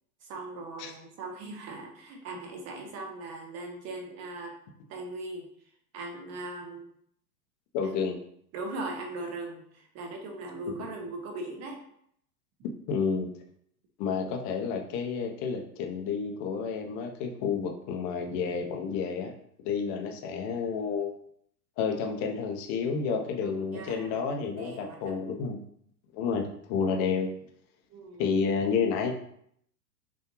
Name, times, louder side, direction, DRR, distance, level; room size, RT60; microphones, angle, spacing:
voice 1, 0.2-4.5 4.9-5.5 5.9-6.9 7.8-7.9 8.5-11.8 23.4-25.2 27.9-28.4, right 2 dB, 30° right, 2 dB, 1.2 m, -39 dB
voice 2, 7.7-8.2 12.9-13.3 14.0-19.3 19.6-21.1 21.8-25.6 26.1-27.3 28.2-29.1, left 5 dB, 35° left, 2 dB, 0.9 m, -30 dB
5.9 x 2.7 x 3.0 m, 0.68 s
figure-of-eight pair, 105°, 49 cm